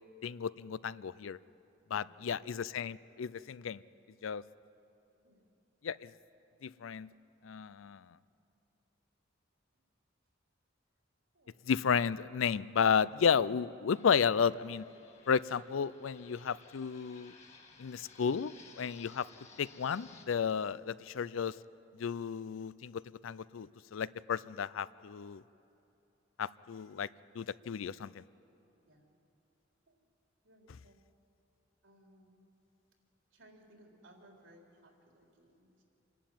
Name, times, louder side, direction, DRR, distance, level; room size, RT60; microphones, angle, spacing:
voice 1, 0.2-1.4 1.9-3.8 4.2-4.4 5.8-6.1 6.6-7.1 7.4-8.0 11.7-14.9 15.3-17.3 17.8-19.3 19.6-21.6 22.0-25.4 26.4-27.1 27.3-28.2, left 6 dB, 90° left, 18 dB, 0.4 m, -33 dB
voice 2, 2.0-2.4 5.2-5.5 7.7-7.9 11.3-11.6 28.9-29.2 29.9-30.0 30.4-31.0 31.8-32.4 33.3-35.8, right 1 dB, 85° right, 0 dB, 3.9 m, -62 dB
Fixed-wing aircraft airplane, 13.9-20.3, left 4 dB, 35° left, 1.9 m, -58 dB
26.5 x 11.5 x 9.3 m, 2.9 s
head